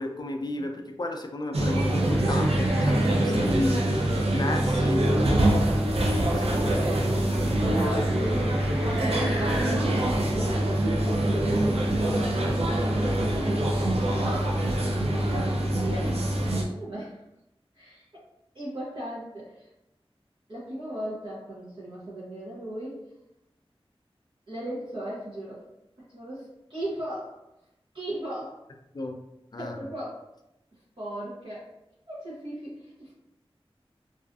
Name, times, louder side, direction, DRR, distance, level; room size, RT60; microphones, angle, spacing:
voice 1, 0.0-3.9 4.3-5.7 6.3-6.5 6.8-7.0 28.9-29.2 29.5-29.8, left 1 dB, 45° left, 3 dB, 0.4 m, -33 dB
sound 1, 1.5-16.6, right 1 dB, 85° right, 0.4 m, -24 dB
sound 2, 1.7-5.7 6.6-9.7, equal, ahead, 0.6 m, -43 dB
voice 2, 6.0-9.9 10.3-17.2 17.7-18.2 18.5-19.7 20.5-23.0 24.5-25.7 26.1-27.4 27.9-28.6 29.6-30.2 31.0-31.7 32.1-33.1, right 1 dB, 55° right, -8 dB, 0.7 m, -37 dB
2.5 x 2.4 x 2.3 m, 0.89 s
wide cardioid pair, 55°, 10 cm